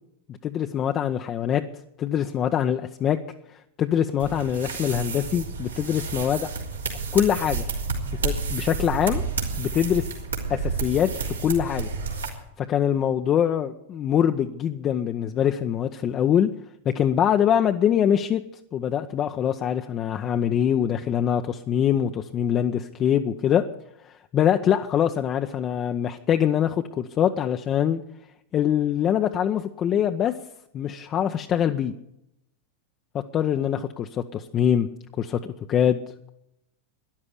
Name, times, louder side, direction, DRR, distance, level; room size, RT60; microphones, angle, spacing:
voice 1, 0.3-1.6 2.0-3.2 3.5-6.5 7.1-7.7 8.2-9.2 9.6-10.1 10.5-11.9 12.6-16.5 16.8-18.4 18.7-23.6 24.0-28.0 28.5-30.3 30.7-31.9 33.1-34.9 35.2-36.0, left 9 dB, 30° left, 5 dB, 0.8 m, -24 dB
sound 1, 4.2-12.3, right 4 dB, 75° right, 3.3 m, -30 dB
13.0 x 11.0 x 9.9 m, 0.82 s
figure-of-eight pair, 90°, 0 cm